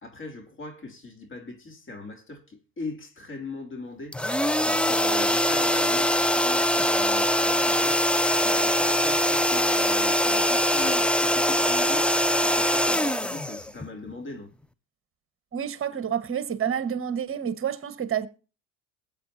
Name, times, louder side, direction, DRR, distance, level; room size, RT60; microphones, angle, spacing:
voice 1, 0.0-4.2 4.6-8.0 8.4-12.1 12.4-14.5, left 3 dB, 30° left, 3.0 m, -39 dB
sound 1, 4.1-14.1, equal, 5° left, 0.6 m, -23 dB
voice 2, 15.5-18.3, right 8 dB, 30° right, 1.6 m, -29 dB
21.5 x 8.4 x 2.8 m
hypercardioid pair, 85°, 40 cm